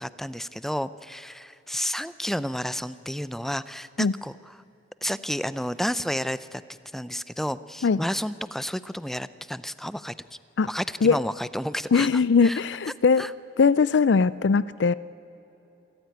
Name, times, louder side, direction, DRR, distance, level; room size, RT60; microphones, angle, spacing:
voice 1, 0.0-4.4 5.0-6.6 6.9-10.1 10.7-12.6 13.2-13.3, equal, ahead, 15 dB, 0.5 m, -31 dB
voice 2, 11.9-13.3 13.6-14.9, left 5 dB, 70° left, 18 dB, 0.4 m, -20 dB
26.5 x 14.5 x 9.3 m, 2.9 s
head